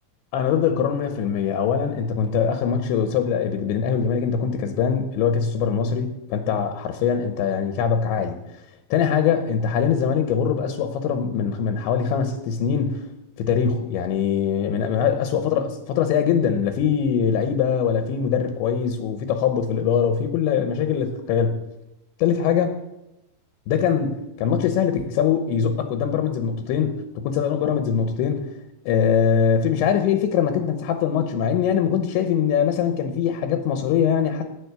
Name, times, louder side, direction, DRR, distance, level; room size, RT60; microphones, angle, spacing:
voice 1, 0.3-8.4 8.9-13.0 13.4-21.6 22.2-22.8 23.7-28.5 28.9-34.4, left 7 dB, 80° left, 7 dB, 3.1 m, -22 dB
17.0 x 6.2 x 8.1 m, 0.93 s
omnidirectional pair, 5.6 m